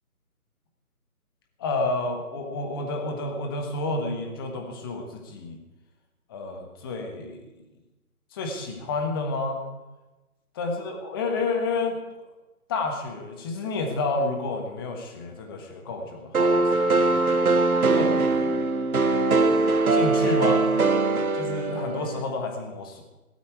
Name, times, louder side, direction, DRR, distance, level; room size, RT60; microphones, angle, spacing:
voice 1, 1.6-5.6 6.3-7.5 8.3-9.7 10.5-12.0 12.7-17.4 17.9-18.6 19.9-20.7 21.3-23.0, left 3 dB, 15° left, 3 dB, 1.4 m, -30 dB
sound 1, 16.3-22.2, right 3 dB, 65° right, 1.6 m, -22 dB
16.5 x 13.0 x 4.7 m, 1.1 s
figure-of-eight pair, 155°, 45 cm